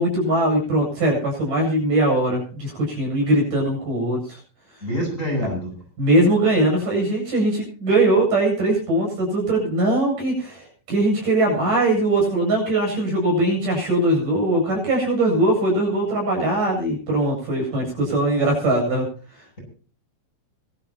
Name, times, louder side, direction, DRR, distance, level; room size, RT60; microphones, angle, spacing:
voice 1, 0.0-4.4 6.0-19.1 19.3-19.5, right 1 dB, 60° right, 0 dB, 9.6 m, -21 dB
voice 2, 4.8-5.7, equal, 20° left, 0 dB, 7.8 m, -25 dB
25.0 x 12.5 x 3.0 m, 0.39 s
omnidirectional pair, 4.3 m